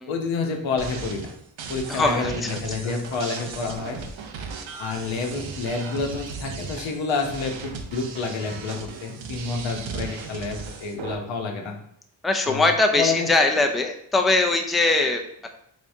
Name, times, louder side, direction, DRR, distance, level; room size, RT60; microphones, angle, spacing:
voice 1, 0.1-1.3 1.7-4.1 4.8-11.7 12.5-12.7 13.0-13.3, left 4 dB, 90° left, 3 dB, 0.8 m, -28 dB
sound 1, 0.8-11.1, right 5 dB, 85° right, 0.6 m, -37 dB
voice 2, 1.9-2.6 12.2-15.5, left 2 dB, ahead, 4 dB, 0.4 m, -22 dB
3.7 x 3.4 x 2.6 m, 0.70 s
cardioid pair, 65°, 45 cm